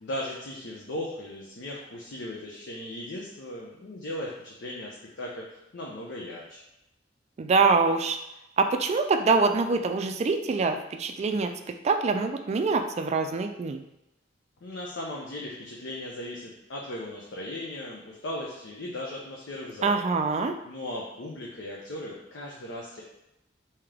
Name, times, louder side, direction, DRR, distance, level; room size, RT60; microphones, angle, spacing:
voice 1, 0.0-6.6 14.6-20.1 20.6-23.0, left 1 dB, 70° left, -3 dB, 0.6 m, -37 dB
voice 2, 7.4-8.2 8.6-11.5 11.8-13.8 19.8-20.5, right 4 dB, 35° right, 6 dB, 0.3 m, -24 dB
3.6 x 2.8 x 3.3 m, 0.88 s
head